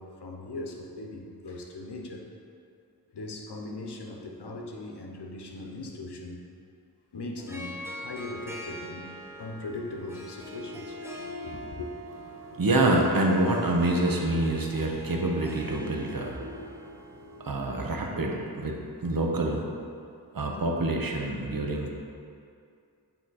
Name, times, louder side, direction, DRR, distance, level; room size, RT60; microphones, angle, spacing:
voice 1, 0.0-2.3 3.1-6.4 7.1-11.0 11.4-11.9, left 2 dB, 80° left, 1 dB, 0.8 m, -39 dB
Harp, 7.4-17.7, left 1 dB, 5° right, 0.7 m, -43 dB
voice 2, 11.1-11.4 12.3-19.7 20.3-21.9, right 2 dB, 60° right, 1 dB, 0.8 m, -27 dB
8.6 x 3.0 x 4.0 m, 2.4 s
wide cardioid pair, 60°, 40 cm